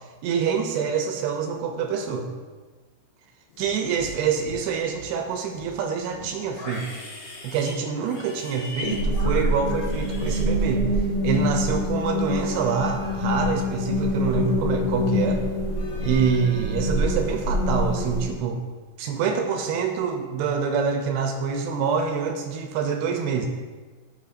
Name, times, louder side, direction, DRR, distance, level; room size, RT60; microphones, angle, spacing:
voice 1, 0.2-2.3 3.6-6.9 7.4-10.9 11.2-15.4 16.0-18.6 19.0-23.5, right 6 dB, 85° right, 4 dB, 2.4 m, -26 dB
Livestock farm animals working animals, 3.5-4.1 4.4-5.1 5.5-11.1 11.3-11.8, left 2 dB, 75° left, 4.0 m, -40 dB
sound 1, 8.8-18.3, left 1 dB, 60° left, 3.7 m, -25 dB
13.5 x 5.5 x 2.6 m, 1.4 s
omnidirectional pair, 4.9 m